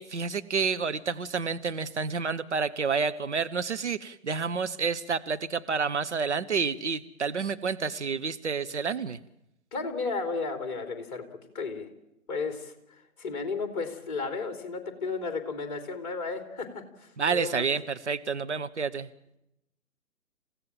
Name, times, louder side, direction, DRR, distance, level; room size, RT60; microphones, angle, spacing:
voice 1, 0.0-9.2 17.2-19.1, right 5 dB, 55° right, 11 dB, 1.0 m, -29 dB
voice 2, 9.7-11.3 11.5-11.9 12.3-17.6, left 4 dB, 25° left, 7 dB, 3.3 m, -34 dB
28.5 x 16.5 x 7.5 m, 0.85 s
figure-of-eight pair, 135°, 43 cm